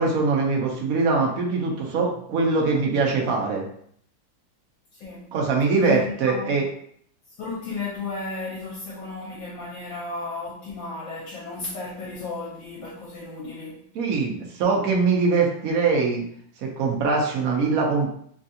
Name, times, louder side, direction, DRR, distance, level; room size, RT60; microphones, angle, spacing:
voice 1, 0.0-3.6 5.3-6.7 14.0-16.2 16.6-18.1, right 4 dB, 75° right, 0.8 m, -22 dB
voice 2, 4.9-5.3 5.8-6.7 7.3-13.9, left 3 dB, 75° left, 1.4 m, -34 dB
3.4 x 2.4 x 2.7 m
omnidirectional pair, 2.2 m